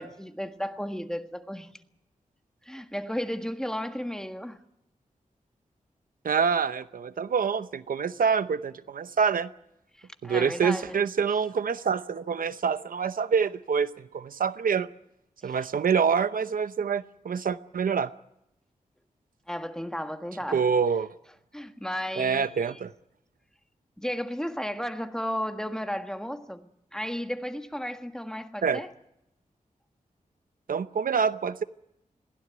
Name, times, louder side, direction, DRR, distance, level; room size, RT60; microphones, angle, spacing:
voice 1, 0.0-1.7 2.6-4.6 10.0-11.0 15.4-15.7 19.5-20.7 21.5-22.8 24.0-26.7 26.9-28.9, equal, 5° left, 1.5 m, -34 dB
voice 2, 6.2-9.5 10.2-14.9 15.4-18.1 20.5-21.1 22.2-22.9 28.6-28.8 30.7-31.6, right 6 dB, 85° right, 0.8 m, -26 dB
22.5 x 16.5 x 9.5 m
wide cardioid pair, 95°, 14 cm